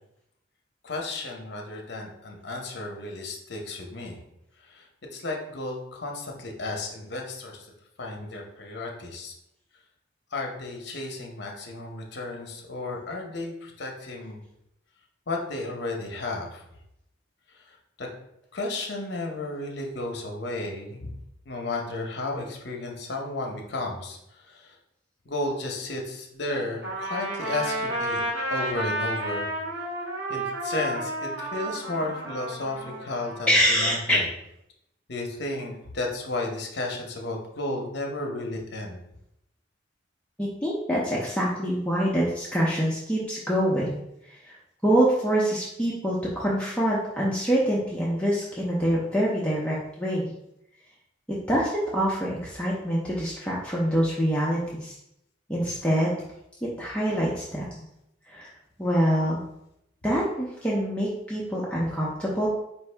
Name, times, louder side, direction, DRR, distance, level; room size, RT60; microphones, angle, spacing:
voice 1, 0.8-4.2 4.6-7.7 8.0-9.3 10.3-14.4 15.3-16.6 17.5-18.1 18.5-21.1 21.5-24.8 25.3-28.2 28.5-29.5 30.3-34.3 35.1-39.0, left 2 dB, 55° left, 1 dB, 0.7 m, -33 dB
Trumpet, 26.8-33.9, right 1 dB, 65° right, 1.0 m, -31 dB
voice 2, 33.5-34.2 40.4-44.0 44.3-44.6 44.8-50.3 51.5-54.9 55.5-56.1 56.6-57.8 58.3-58.5 58.8-59.4 60.0-62.5, equal, 5° left, -6 dB, 0.5 m, -25 dB
4.5 x 2.6 x 3.2 m, 0.82 s
head